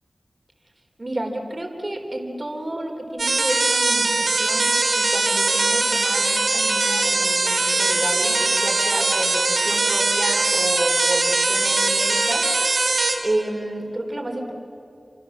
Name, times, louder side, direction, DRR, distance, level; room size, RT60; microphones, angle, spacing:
voice 1, 1.0-4.7 5.0-12.7 13.0-14.5, right 1 dB, 40° right, 3 dB, 4.1 m, -30 dB
sound 1, 3.2-13.1, right 3 dB, 75° right, 3.8 m, -21 dB
28.5 x 27.5 x 7.5 m, 2.9 s
wide cardioid pair, 80°, 0 cm